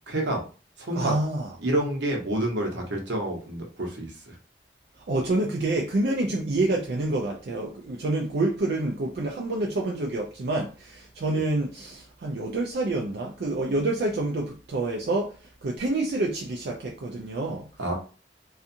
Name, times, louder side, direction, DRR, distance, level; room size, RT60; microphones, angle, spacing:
voice 1, 0.1-0.4 0.8-1.1 1.6-4.3 17.8-17.9, right 1 dB, 85° right, 0.9 m, -28 dB
voice 2, 0.9-1.5 5.1-15.3 15.6-17.6, right 2 dB, 65° right, 0.4 m, -27 dB
2.5 x 2.4 x 2.6 m
head